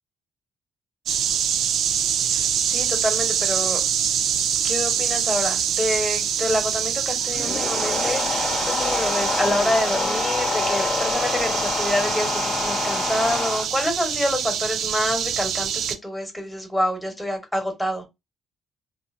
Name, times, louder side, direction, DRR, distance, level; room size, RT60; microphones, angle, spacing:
sound 1, 1.1-16.0, right 8 dB, 75° right, 0.3 m, -25 dB
voice 1, 2.3-3.8 4.6-18.0, left 1 dB, 10° left, 0.9 m, -27 dB
sound 2, 7.2-13.6, left 3 dB, 70° left, 0.9 m, -26 dB
2.8 x 2.0 x 2.4 m
cardioid pair, 90°, 0 cm